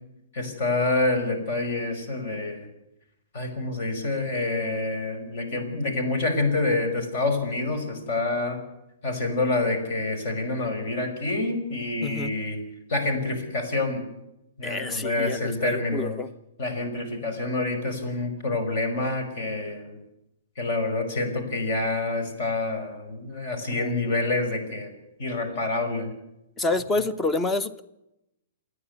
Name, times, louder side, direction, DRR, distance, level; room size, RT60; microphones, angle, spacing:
voice 1, 0.3-2.7 3.3-8.6 9.0-12.6 12.9-14.0 14.6-16.1 16.6-20.0 20.6-24.9 25.2-26.1, left 2 dB, 50° left, 7 dB, 5.5 m, -27 dB
voice 2, 12.0-12.3 14.6-16.3 23.7-24.1 26.6-27.8, left 2 dB, 10° left, 13 dB, 0.9 m, -28 dB
27.5 x 9.9 x 9.6 m, 0.88 s
hypercardioid pair, 160°, 0 cm